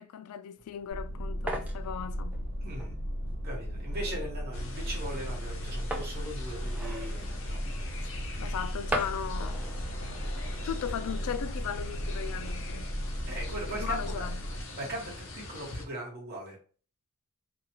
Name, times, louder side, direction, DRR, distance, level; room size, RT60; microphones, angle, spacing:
voice 1, 0.0-2.4 8.4-9.6 10.6-12.9 13.7-14.4, left 8 dB, 85° left, 0.3 m, -37 dB
sound 1, 0.6-11.0, right 2 dB, 5° right, 0.4 m, -42 dB
sound 2, 0.9-14.6, equal, 70° right, 1.3 m, -36 dB
voice 2, 2.6-2.9 3.4-7.6 13.3-14.3 14.7-16.6, right 1 dB, 45° right, 1.2 m, -39 dB
sound 3, 4.5-15.9, left 2 dB, 65° left, 0.7 m, -43 dB
2.7 x 2.3 x 2.9 m
head